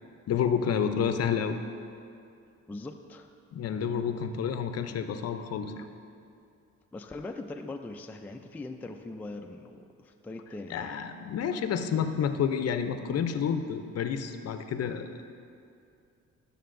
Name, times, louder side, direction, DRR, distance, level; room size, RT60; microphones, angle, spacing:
voice 1, 0.3-1.6 3.5-5.9 10.7-15.1, left 7 dB, 55° left, 8 dB, 0.6 m, -29 dB
voice 2, 2.7-3.3 6.9-10.9, left 2 dB, 5° left, 4 dB, 0.3 m, -41 dB
12.5 x 6.7 x 2.5 m, 2.5 s
cardioid pair, 90°, 30 cm